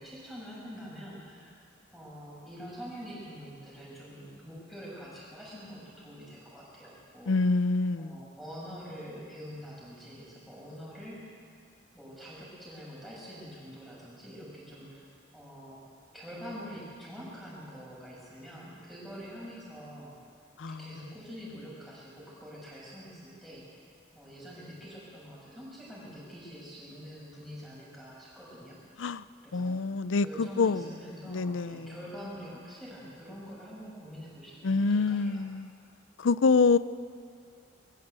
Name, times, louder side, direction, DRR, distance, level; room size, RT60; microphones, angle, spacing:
voice 1, 0.0-1.5 1.9-7.3 8.0-11.2 11.9-15.1 15.3-15.8 16.1-20.1 20.7-23.7 24.1-28.8 29.4-35.5, equal, ahead, -6 dB, 7.0 m, -45 dB
voice 2, 7.3-8.2 20.6-20.8 29.0-29.2 29.5-30.8 31.3-31.9 34.6-35.7 36.2-36.8, left 4 dB, 90° left, 16 dB, 0.5 m, -26 dB
22.0 x 15.0 x 8.2 m, 2.2 s
head